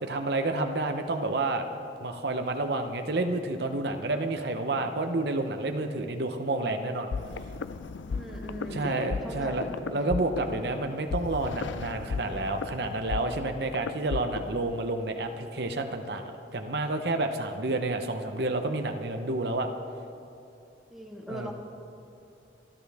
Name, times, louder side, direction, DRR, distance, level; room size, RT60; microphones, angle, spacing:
voice 1, 0.0-1.7 2.0-7.1 8.7-9.6 9.9-19.7 21.3-21.5, right 2 dB, 60° right, 5 dB, 0.8 m, -30 dB
sound 1, 7.1-14.7, left 4 dB, 85° left, 0.4 m, -35 dB
voice 2, 8.1-9.9 20.9-21.5, equal, ahead, 0 dB, 1.5 m, -40 dB
27.0 x 11.5 x 3.5 m, 2.8 s
head